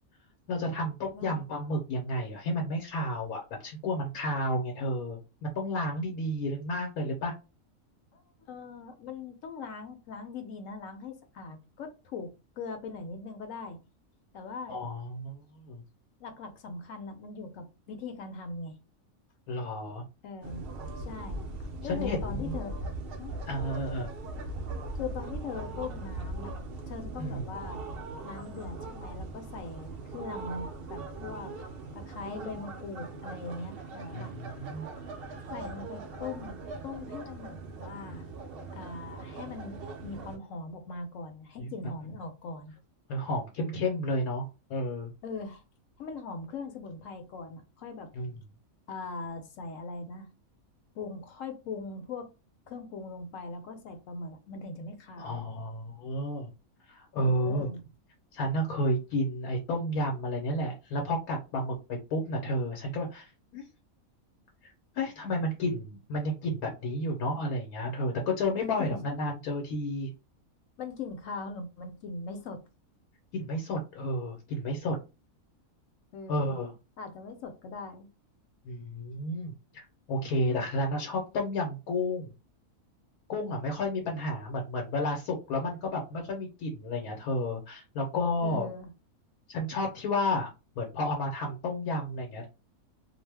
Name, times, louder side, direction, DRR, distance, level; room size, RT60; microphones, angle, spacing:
voice 1, 0.5-7.3 14.7-15.8 19.5-20.0 21.8-22.5 23.5-24.1 27.2-27.4 34.1-34.9 41.6-41.9 43.1-44.4 44.7-45.1 48.1-48.4 55.2-56.5 56.9-57.7 58.3-63.7 64.6-70.1 73.3-75.0 76.3-76.7 78.6-82.3 83.3-88.7 89.5-92.5, left 1 dB, 90° left, 1.1 m, -31 dB
voice 2, 1.1-1.4 8.1-12.3 12.6-13.8 14.3-14.8 16.2-18.8 20.2-20.6 21.0-22.7 23.2-23.3 24.9-26.6 26.9-27.8 28.2-31.5 31.9-34.3 35.5-38.3 38.7-42.7 45.2-45.6 46.0-48.1 48.9-50.3 50.9-52.3 52.7-55.4 57.2-57.8 68.6-69.0 70.8-72.6 76.1-76.6 77.0-78.1 88.4-88.9, left 4 dB, 70° left, 0.9 m, -40 dB
sound 1, 20.4-40.4, right 2 dB, 65° right, 0.6 m, -40 dB
2.5 x 2.0 x 3.3 m
omnidirectional pair, 1.5 m